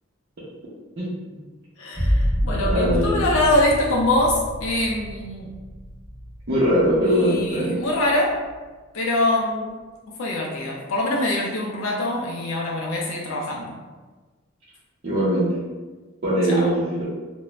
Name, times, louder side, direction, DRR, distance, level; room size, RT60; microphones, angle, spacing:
voice 1, 1.8-5.5 7.0-8.4 8.9-9.8 10.2-13.7 16.4-16.7, left 1 dB, 70° left, -3 dB, 0.4 m, -24 dB
sound 1, 1.9-7.4 7.9-8.5, equal, ahead, 0.8 m, -27 dB
voice 2, 2.6-3.2 6.5-7.8 15.0-15.5 16.2-17.0, equal, 55° right, -11 dB, 0.7 m, -21 dB
2.4 x 2.0 x 3.1 m, 1.3 s
head